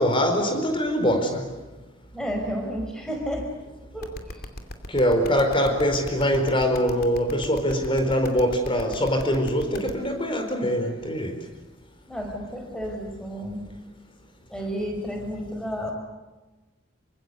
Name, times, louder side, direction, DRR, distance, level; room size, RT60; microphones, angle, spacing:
voice 1, 0.0-1.5 4.9-11.4, equal, 25° left, 5 dB, 4.5 m, -23 dB
voice 2, 2.1-3.5 3.9-4.4 12.1-13.7 14.5-15.9, equal, 5° left, 2 dB, 5.4 m, -31 dB
sound 1, 4.0-9.9, left 1 dB, 50° left, 2.6 m, -36 dB
26.5 x 25.0 x 8.2 m, 1.1 s
head